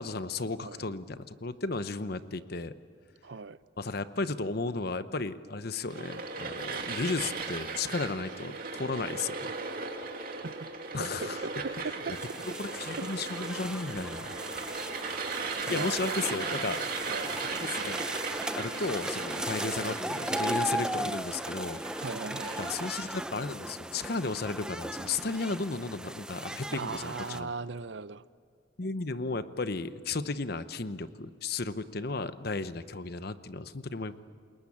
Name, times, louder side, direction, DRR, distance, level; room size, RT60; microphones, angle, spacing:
voice 1, 0.0-2.7 3.8-9.5 10.9-11.4 12.5-14.3 15.7-16.8 17.6-18.1 18.6-22.0 22.6-27.5 28.8-34.1, left 3 dB, 55° left, 13 dB, 0.9 m, -34 dB
voice 2, 3.2-3.6 10.4-10.7 11.0-12.2 13.0-13.1 15.7-17.4 22.0-22.6 26.7-28.2, right 4 dB, 65° right, 16 dB, 0.7 m, -38 dB
sound 1, 5.9-23.2, right 4 dB, 50° right, 2.5 m, -37 dB
sound 2, 12.1-27.4, right 1 dB, 5° right, 0.6 m, -37 dB
28.5 x 21.5 x 8.6 m, 2.3 s
head